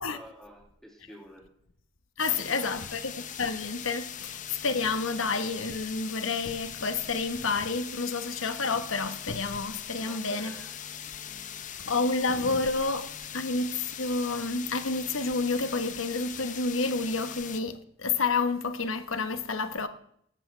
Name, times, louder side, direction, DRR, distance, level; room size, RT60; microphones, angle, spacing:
voice 1, 0.0-1.4 2.3-2.9 10.0-10.7 11.2-11.6, equal, ahead, 2.3 m, -49 dB
voice 2, 2.2-3.1 3.4-10.5 11.8-19.9, left 3 dB, 85° left, 1.3 m, -29 dB
sound 1, 2.2-17.6, left 9 dB, 40° left, 0.7 m, -41 dB
17.5 x 14.0 x 3.4 m
head